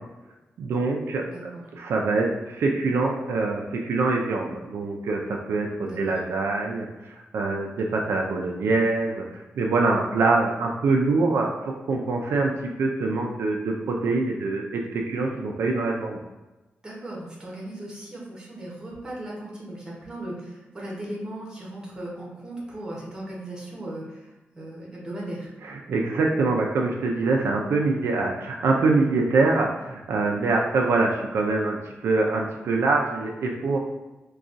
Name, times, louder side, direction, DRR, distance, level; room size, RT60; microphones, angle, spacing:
voice 1, 0.6-6.9 7.3-12.5 12.8-16.2 25.6-31.8 32.0-33.8, right 3 dB, 80° right, 0 dB, 0.4 m, -24 dB
voice 2, 1.2-1.6 5.8-6.2 16.8-25.5, right 1 dB, 15° right, -5 dB, 0.8 m, -37 dB
3.8 x 2.3 x 2.5 m, 1.1 s
wide cardioid pair, 175°, 4 cm